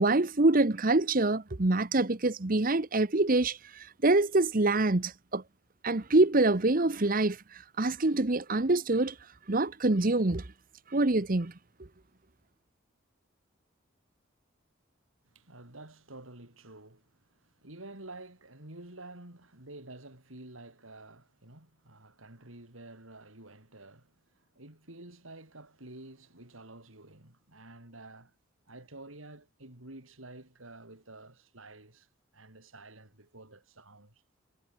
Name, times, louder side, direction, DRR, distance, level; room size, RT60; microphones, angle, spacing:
voice 1, 0.0-5.4 5.8-7.4 7.8-9.1 9.5-10.4 10.9-11.5, right 2 dB, 45° right, 1.0 m, -25 dB
voice 2, 15.2-28.3 28.7-32.1 32.3-34.2, right 2 dB, 85° right, 5.0 m, -50 dB
head